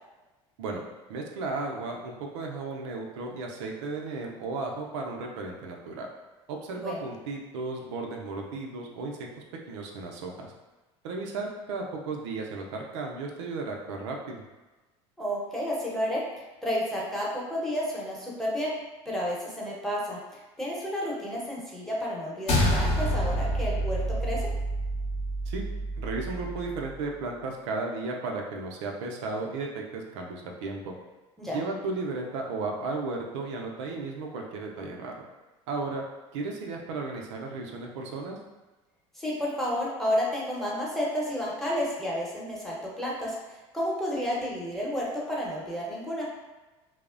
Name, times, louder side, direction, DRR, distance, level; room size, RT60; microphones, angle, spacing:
voice 1, 1.1-6.1 6.5-9.3 9.7-10.5 11.0-14.4 25.5-25.6 26.0-30.9 31.5-35.2 35.7-36.0 36.3-38.4, right 3 dB, 85° right, 0 dB, 0.4 m, -34 dB
voice 2, 6.7-7.0 15.2-16.2 16.6-18.7 19.0-24.5 31.4-31.6 39.1-46.3, equal, ahead, -5 dB, 0.8 m, -31 dB
sound 1, 22.5-27.0, equal, 55° left, 0.6 m, -28 dB
2.9 x 2.0 x 2.4 m, 1.2 s
supercardioid pair, 85°, 15 cm